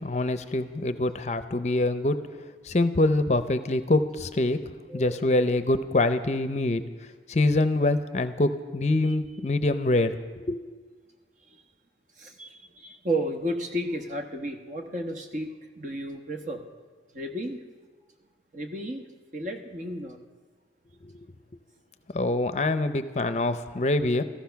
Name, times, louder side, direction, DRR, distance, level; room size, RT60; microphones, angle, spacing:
voice 1, 0.0-2.2 2.6-4.6 4.9-6.8 7.3-10.6 21.0-21.1 22.1-24.2, left 2 dB, 40° left, 11 dB, 0.6 m, -25 dB
voice 2, 4.9-5.3 11.5-11.6 12.2-16.6 17.1-17.7 18.5-19.1 19.3-20.2, right 1 dB, 45° right, 4 dB, 1.2 m, -33 dB
14.5 x 14.5 x 5.8 m, 1.4 s
head